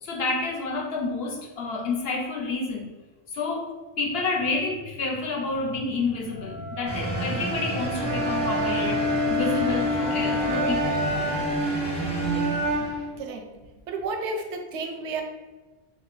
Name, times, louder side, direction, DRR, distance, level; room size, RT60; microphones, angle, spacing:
voice 1, 0.0-2.9 3.3-11.0, left 3 dB, 65° left, 0 dB, 0.8 m, -29 dB
Wind instrument woodwind instrument, 6.3-10.9, left 1 dB, 85° left, 1.2 m, -36 dB
sound 1, 6.9-13.2, equal, 5° left, 0.7 m, -31 dB
Wind instrument woodwind instrument 2, 7.9-13.1, equal, 40° right, 0.3 m, -27 dB
voice 2, 13.1-13.5 13.9-15.2, right 3 dB, 85° right, 4 dB, 0.9 m, -32 dB
3.8 x 2.2 x 3.1 m, 1.2 s
omnidirectional pair, 1.2 m